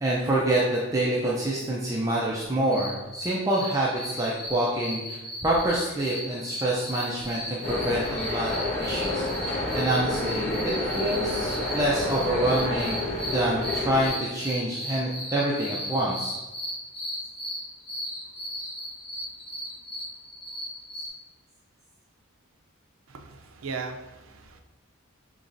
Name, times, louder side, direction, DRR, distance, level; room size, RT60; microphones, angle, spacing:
voice 1, 0.0-16.3, right 1 dB, 15° right, -5 dB, 0.4 m, -27 dB
sound 1, 2.7-21.1, equal, 50° left, 1.2 m, -36 dB
sound 2, 7.6-14.1, left 1 dB, 30° left, 1.1 m, -29 dB
voice 2, 23.1-24.6, right 4 dB, 75° right, 5 dB, 0.5 m, -38 dB
5.3 x 3.0 x 2.6 m, 1.1 s
head